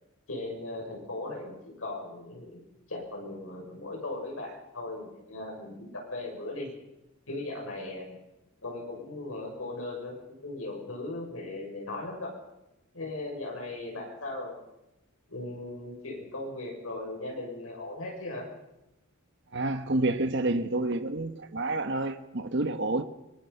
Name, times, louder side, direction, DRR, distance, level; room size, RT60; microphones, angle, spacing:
voice 1, 0.3-2.6 2.9-6.7 7.3-8.2 8.6-12.3 12.9-14.6 15.3-18.5, left 2 dB, 80° left, 6.8 m, -38 dB
voice 2, 19.5-23.0, right 2 dB, 55° right, 1.2 m, -29 dB
24.0 x 23.0 x 5.7 m
head